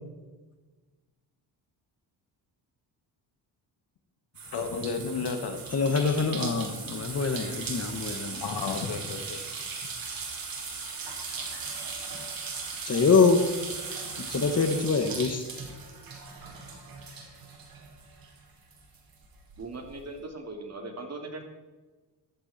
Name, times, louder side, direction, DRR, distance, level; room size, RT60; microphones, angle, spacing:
sound 1, 4.3-18.4 18.7-19.9, right 4 dB, 50° right, 4.5 m, -38 dB
voice 1, 4.4-5.6 8.4-9.4, left 5 dB, 60° left, 6 dB, 2.3 m, -32 dB
voice 2, 5.7-8.4 12.8-13.4 14.3-15.4, left 4 dB, 35° left, 7 dB, 1.7 m, -24 dB
voice 3, 19.6-21.4, right 2 dB, 35° right, 4 dB, 3.0 m, -39 dB
14.0 x 13.5 x 4.4 m, 1.2 s
cardioid pair, 90°, 43 cm